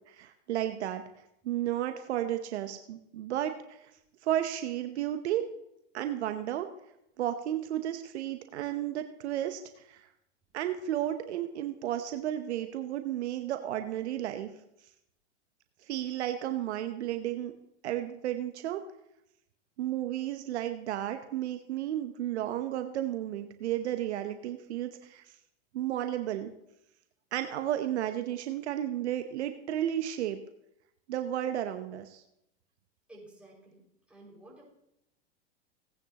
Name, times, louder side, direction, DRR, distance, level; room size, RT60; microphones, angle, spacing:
voice 1, 0.1-1.0 1.4-3.8 4.2-5.4 5.9-6.7 7.2-10.1 10.5-14.5 15.9-17.5 17.8-18.8 19.8-25.2 25.7-26.5 27.3-30.4 31.1-32.2, right 12 dB, 70° right, 8 dB, 1.0 m, -33 dB
voice 2, 33.1-34.6, right 1 dB, 5° right, -4 dB, 5.5 m, -53 dB
17.5 x 9.8 x 2.9 m, 0.82 s
hypercardioid pair, 105°, 34 cm